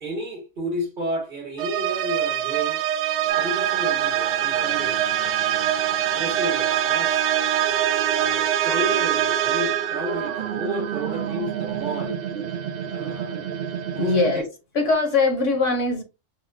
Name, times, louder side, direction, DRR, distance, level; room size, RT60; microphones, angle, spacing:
voice 1, 0.0-2.8 3.2-5.1 6.1-7.4 8.1-12.2 12.9-13.4 13.9-14.4, equal, 40° right, 1.2 m, -31 dB
sound 1, 1.6-10.1, right 11 dB, 80° right, 1.0 m, -24 dB
sound 2, 3.3-14.4, right 10 dB, 55° right, 0.7 m, -29 dB
voice 2, 13.9-14.4 14.7-16.0, left 3 dB, 70° left, 1.5 m, -21 dB
4.9 x 2.0 x 3.7 m
omnidirectional pair, 1.4 m